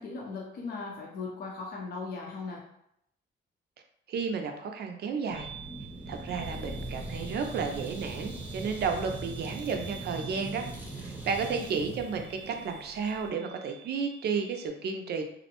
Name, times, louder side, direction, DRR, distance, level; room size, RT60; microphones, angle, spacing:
voice 1, 0.0-2.6, left 4 dB, 50° left, -2 dB, 0.6 m, -38 dB
voice 2, 4.1-5.5 6.1-10.7 10.9-15.2, right 5 dB, 55° right, 5 dB, 0.4 m, -32 dB
sound 1, 5.3-14.7, right 8 dB, 90° left, 1.1 m, -50 dB
sound 2, 5.3-13.3, right 2 dB, 10° right, 0.6 m, -40 dB
2.5 x 2.0 x 2.8 m, 0.76 s
cardioid pair, 90°, 20 cm